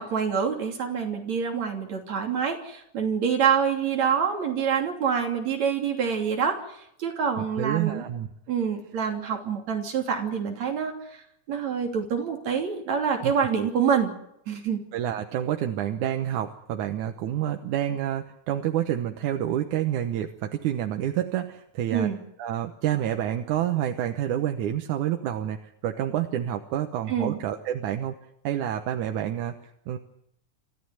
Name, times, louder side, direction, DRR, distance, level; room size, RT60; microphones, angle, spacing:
voice 1, 0.0-6.6 7.0-8.0 8.5-10.9 11.5-14.1 14.5-14.8 21.9-22.2 27.1-27.4, right 7 dB, 65° right, 2 dB, 4.2 m, -26 dB
voice 2, 7.4-8.3 13.2-13.3 14.9-22.1 22.4-28.1 28.4-29.6 29.9-30.0, right 11 dB, 90° right, 5 dB, 2.5 m, -28 dB
25.5 x 14.5 x 9.5 m, 0.77 s
omnidirectional pair, 3.4 m